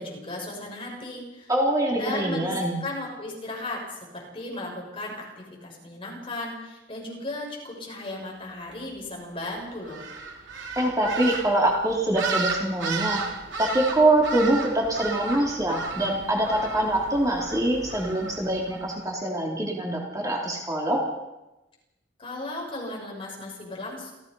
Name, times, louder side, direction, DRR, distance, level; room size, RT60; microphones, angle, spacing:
voice 1, 0.0-1.5 1.9-10.0 22.2-24.1, left 2 dB, 30° left, -1 dB, 7.2 m, -36 dB
voice 2, 1.5-2.8 10.8-13.2 13.6-21.0, right 1 dB, 20° right, -2 dB, 3.6 m, -24 dB
sound 1, 9.9-18.9, right 4 dB, 85° right, 3.9 m, -34 dB
29.0 x 16.5 x 5.6 m, 1.0 s
head